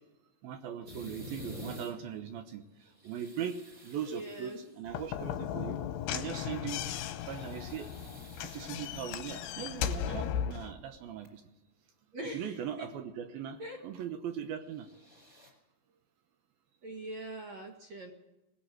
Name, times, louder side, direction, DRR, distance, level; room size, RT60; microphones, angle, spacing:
voice 1, 0.4-2.6 3.0-5.8 6.1-6.8 7.3-7.9 8.4-11.4 12.3-14.9, right 8 dB, 75° right, 8 dB, 2.2 m, -39 dB
sound 1, 0.9-1.9 2.8-4.8 6.8-9.2 9.8-9.9 10.9-11.0 11.2-11.3 14.6-15.5, left 1 dB, 20° right, 4.9 m, -49 dB
voice 2, 4.0-4.7 12.1-12.9 13.6-13.8 16.8-18.1, right 1 dB, 50° right, 1 dB, 2.2 m, -42 dB
Slam / Knock, 4.9-10.7, left 9 dB, 75° left, 2.6 m, -36 dB
20.0 x 19.5 x 7.8 m, 1.0 s
omnidirectional pair, 5.5 m